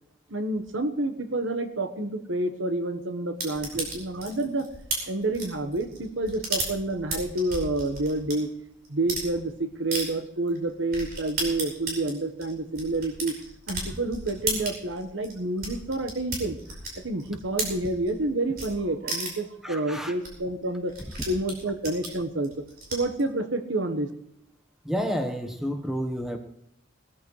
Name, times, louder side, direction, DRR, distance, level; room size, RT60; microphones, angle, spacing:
voice 1, 0.3-4.7 5.1-8.5 8.9-13.3 13.7-16.6 17.0-20.9 21.3-22.6 22.9-24.1, right 2 dB, 80° right, 9 dB, 1.3 m, -29 dB
sound 1, 3.4-8.3 8.8-9.3 9.9-10.0 10.5-10.6 10.9-18.2 18.5-18.7 19.1-19.5 19.9-20.0 20.2-20.3 20.5-23.2, right 2 dB, 50° right, 5.4 m, -34 dB
voice 2, 19.6-20.1 24.8-26.4, equal, ahead, 4 dB, 1.1 m, -30 dB
20.5 x 13.5 x 3.2 m, 0.74 s
head